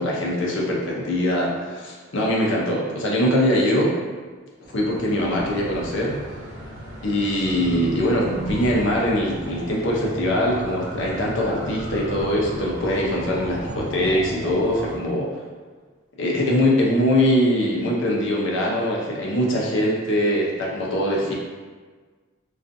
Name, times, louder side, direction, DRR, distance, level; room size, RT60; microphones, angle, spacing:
voice 1, 0.0-4.0 4.7-6.2 7.0-15.4 16.2-21.3, equal, 60° left, -3 dB, 0.5 m, -22 dB
sound 1, 4.6-15.0, equal, 70° right, 0.9 m, -34 dB
2.5 x 2.3 x 2.5 m, 1.5 s
head